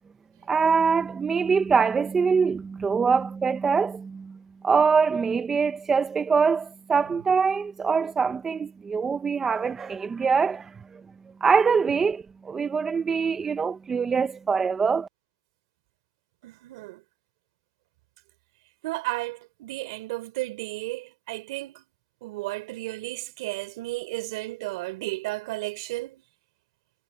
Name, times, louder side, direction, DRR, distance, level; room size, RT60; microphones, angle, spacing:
voice 1, 0.5-4.4 4.6-11.0 11.4-15.1, right 5 dB, 10° right, 0.6 m, -24 dB
voice 2, 16.4-17.0 18.8-21.8 22.2-26.2, right 20 dB, 50° right, 3.3 m, -33 dB
supercardioid pair, 165°, 3 cm